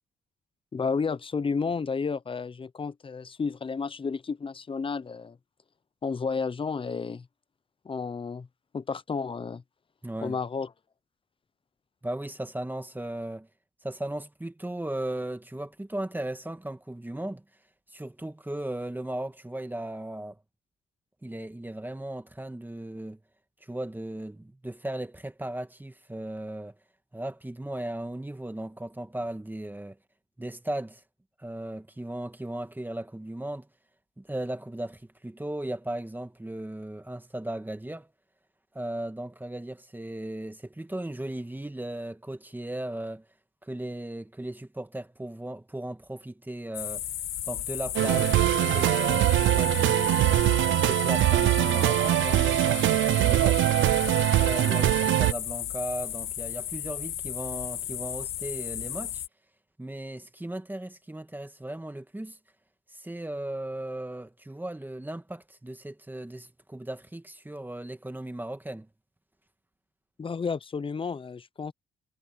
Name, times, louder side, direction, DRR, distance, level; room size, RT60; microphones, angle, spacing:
voice 1, 0.7-5.4 6.0-7.3 7.8-8.5 8.7-9.6 10.2-10.7 70.2-71.7, left 5 dB, 25° left, 0.7 m, -31 dB
voice 2, 10.0-10.4 12.0-13.5 13.8-17.4 17.9-20.4 21.2-23.2 23.6-26.8 27.1-30.0 30.4-31.0 31.4-33.7 34.2-38.1 38.7-43.3 43.6-47.1 47.4-50.4 50.8-53.7 54.4-59.2 59.8-62.4 62.9-68.9, right 1 dB, 10° right, 2.1 m, -36 dB
sound 1, 46.7-59.3, left 12 dB, 80° left, 2.2 m, -34 dB
sound 2, 47.9-55.3, right 16 dB, 75° right, 0.4 m, -22 dB
cardioid pair, 90°, 20 cm